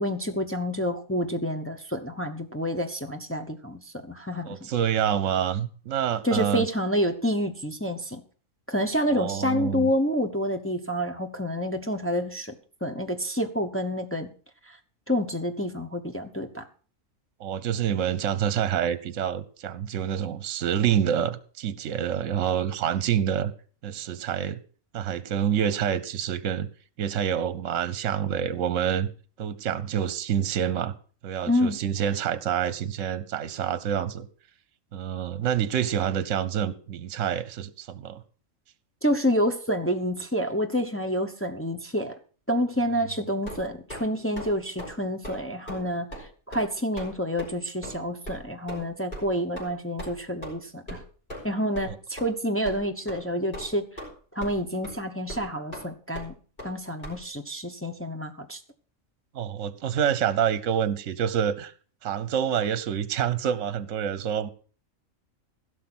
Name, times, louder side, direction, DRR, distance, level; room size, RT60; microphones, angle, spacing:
voice 1, 0.0-4.7 6.2-8.2 8.7-12.6 12.8-14.3 14.7-14.8 15.1-16.6 31.5-31.8 39.0-42.2 42.5-51.0 51.4-53.9 54.3-56.3 56.6-58.6, equal, 10° left, 0.8 m, -28 dB
voice 2, 4.4-6.6 9.1-9.9 17.4-23.5 23.8-24.6 24.9-26.7 27.0-29.1 29.4-30.9 31.2-34.3 34.9-38.2 51.9-52.0 59.3-61.7 62.0-64.5, right 9 dB, 70° right, 1.1 m, -27 dB
sound 1, 43.4-44.0 44.4-44.5 44.8-45.0 45.2-45.4 45.7-45.8 46.1-46.3 46.5-46.7 47.0-47.1 47.4-47.5 47.8-48.0 48.3-48.4 48.7-48.8 49.1-49.2 49.6-49.7 50.0-50.1 50.4-50.5 50.9-51.0 51.3-51.5 51.8-51.9 52.2-52.3 52.7-52.8 53.1-53.2 53.5-54.1 54.4-54.6 54.8-54.9 55.3-55.4 55.7-55.8 56.1-56.3 56.6-56.7 57.0-57.2, equal, 40° left, 5.3 m, -38 dB
16.0 x 6.4 x 6.1 m
omnidirectional pair, 1.4 m